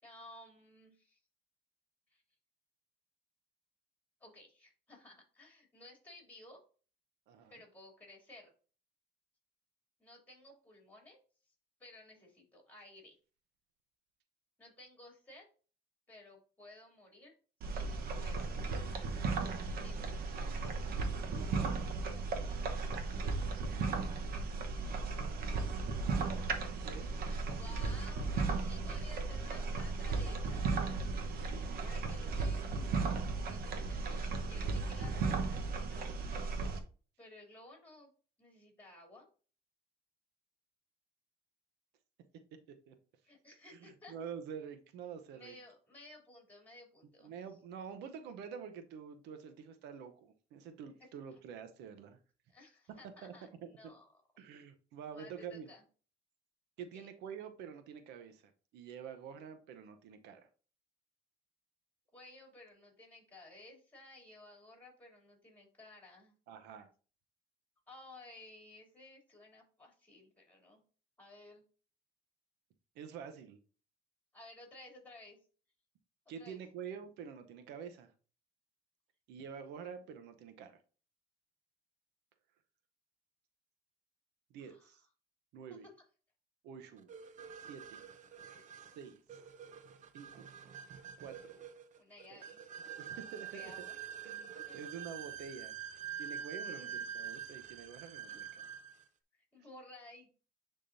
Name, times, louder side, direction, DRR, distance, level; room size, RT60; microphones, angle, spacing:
voice 1, 0.0-1.2 2.1-2.2 4.2-6.6 7.5-8.5 10.0-11.2 11.8-13.2 14.6-15.5 16.1-17.3 17.6-18.6 19.8-20.5 23.7-25.9 27.2-30.7 31.4-32.9 33.4-36.2 37.2-38.1 38.4-39.3 43.2-44.1 45.3-47.3 51.3-51.4 52.5-54.1 55.1-55.8 56.9-57.1 62.1-66.3 67.9-70.8 71.2-71.6 74.3-75.4 76.4-76.6 84.6-85.0 85.8-85.9 88.3-89.0 92.0-92.6 93.5-93.9 94.7-94.8 96.6-97.1 98.0-98.4 99.3-100.5, left 2 dB, 10° left, 1 dB, 2.9 m, -56 dB
voice 2, 7.3-7.6 21.3-21.9 26.8-27.1 31.0-31.6 42.9-43.0 43.7-45.6 47.2-52.2 53.2-53.3 53.8-53.9 54.4-55.7 56.8-58.4 58.7-60.4 66.5-66.9 73.0-73.6 76.3-78.1 79.3-80.8 84.5-85.0 85.5-85.9 86.6-87.1 87.5-88.0 89.0-89.2 90.1-90.5 91.2-91.6 92.3-92.4 93.0-93.7 94.2-95.7 96.2-98.6, right 7 dB, 85° right, 8 dB, 0.8 m, -47 dB
sound 1, 17.6-36.8, right 4 dB, 60° right, 1.0 m, -36 dB
sound 2, 87.1-99.0, right 8 dB, 45° right, 0.7 m, -46 dB
10.0 x 3.7 x 2.6 m, 0.38 s
cardioid pair, 110°, 17 cm